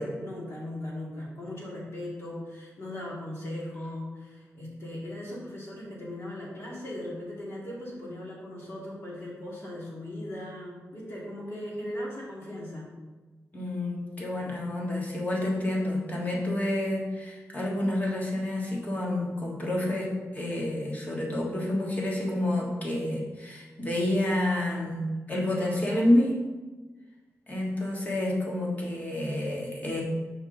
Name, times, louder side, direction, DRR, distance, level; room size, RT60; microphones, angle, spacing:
voice 1, 0.2-12.9, left 1 dB, 50° left, -5 dB, 2.2 m, -38 dB
voice 2, 13.5-26.3 27.5-30.0, left 1 dB, 30° left, -3 dB, 1.5 m, -29 dB
5.9 x 5.4 x 3.8 m, 1.3 s
wide cardioid pair, 145°, 5 cm